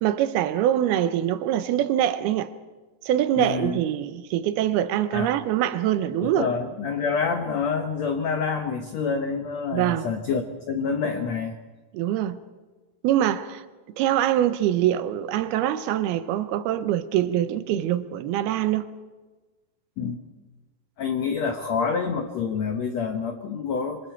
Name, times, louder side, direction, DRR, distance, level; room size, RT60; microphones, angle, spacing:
voice 1, 0.0-2.5 3.1-6.5 9.7-10.1 11.9-12.4 13.0-13.6 14.0-18.9, right 12 dB, 80° right, 2.6 m, -24 dB
voice 2, 3.3-3.8 5.1-5.3 6.2-11.5 20.0-20.2 21.0-24.0, left 5 dB, 80° left, 1.5 m, -27 dB
26.0 x 25.0 x 4.5 m
omnidirectional pair, 4.6 m